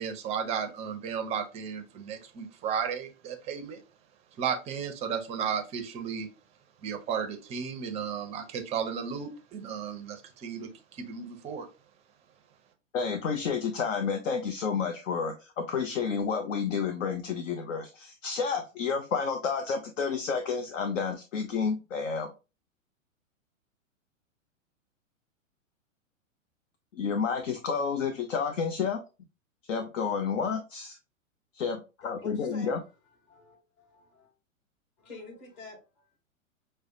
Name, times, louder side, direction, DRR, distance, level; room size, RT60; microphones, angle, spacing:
voice 1, 0.0-3.8 4.4-6.3 6.8-11.7, right 7 dB, 15° right, 0.5 m, -34 dB
voice 2, 12.9-22.3 26.9-29.0 29.6-31.0 31.5-32.8, left 6 dB, 65° left, 0.7 m, -30 dB
voice 3, 32.0-32.8 33.2-34.3 35.0-36.2, left 2 dB, 40° left, 2.3 m, -48 dB
6.2 x 2.1 x 2.5 m
hypercardioid pair, 110°, 40 cm